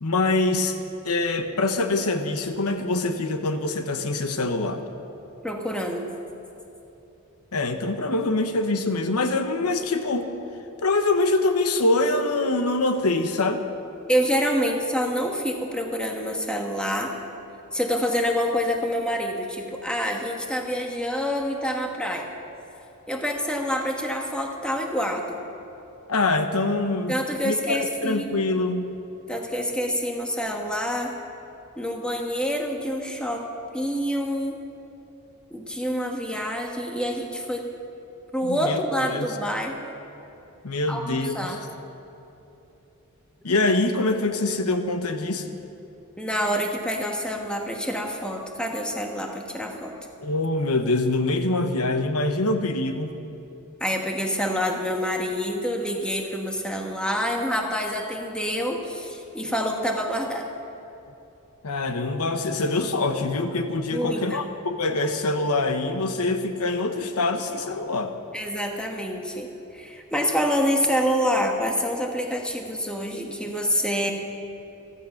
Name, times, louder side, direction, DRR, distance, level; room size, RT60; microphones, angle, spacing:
voice 1, 0.0-0.8 1.0-4.8 7.5-10.3 10.8-13.6 26.1-29.0 38.4-38.8 39.1-39.3 40.6-41.6 43.4-45.5 50.2-53.2 61.6-68.1, left 2 dB, 85° left, 7 dB, 1.1 m, -24 dB
voice 2, 5.4-6.0 14.1-17.1 17.7-22.3 23.1-25.4 27.1-28.4 29.3-31.2 31.8-33.5 33.7-34.6 35.5-37.7 38.3-39.9 40.9-41.6 46.2-49.9 53.8-60.5 63.9-64.4 68.3-74.1, equal, 5° left, 1 dB, 1.3 m, -27 dB
14.5 x 14.5 x 5.8 m, 3.0 s
head